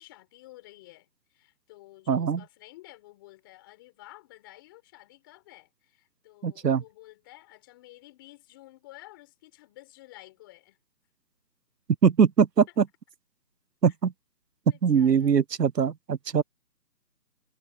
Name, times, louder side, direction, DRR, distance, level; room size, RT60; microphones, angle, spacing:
voice 1, 0.0-10.8 12.7-12.8 13.9-14.0 14.7-15.3, left 18 dB, 15° left, 6.7 m, -52 dB
voice 2, 2.1-2.4 6.4-6.8 12.0-12.9 13.8-14.1 14.8-16.4, right 7 dB, 75° right, 1.2 m, -22 dB
hypercardioid pair, 175°, 49 cm